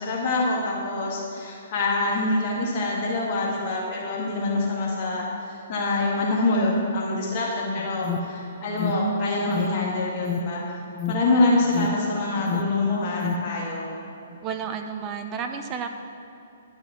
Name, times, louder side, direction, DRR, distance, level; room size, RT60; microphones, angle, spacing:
voice 1, 0.0-10.8 11.1-13.9, left 2 dB, 40° left, -3 dB, 1.9 m, -25 dB
Alarm, 7.8-13.6, left 5 dB, 20° left, 0.6 m, -32 dB
voice 2, 14.4-15.9, right 6 dB, 25° right, 6 dB, 0.6 m, -31 dB
11.0 x 5.5 x 7.3 m, 2.9 s
figure-of-eight pair, 120°, 0 cm